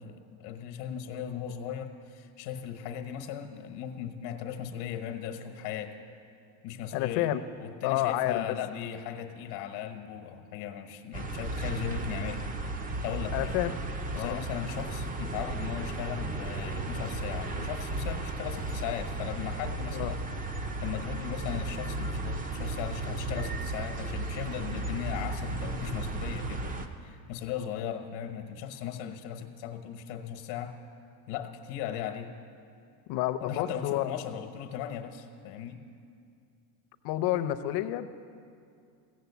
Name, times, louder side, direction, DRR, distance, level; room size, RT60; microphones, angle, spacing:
voice 1, 0.0-6.0 6.6-7.3 7.6-12.4 13.0-13.5 14.1-20.3 20.8-30.7 31.3-32.3 33.4-35.8, left 9 dB, 90° left, 4 dB, 1.1 m, -37 dB
voice 2, 6.9-7.4 7.8-8.4 13.3-13.8 14.1-14.4 19.9-20.1 33.1-34.1 37.0-38.1, left 14 dB, 60° left, 12 dB, 0.7 m, -29 dB
sound 1, 11.1-26.9, right 2 dB, 20° right, 0.5 m, -35 dB
16.0 x 6.5 x 8.2 m, 2.4 s
cardioid pair, 150°, 43 cm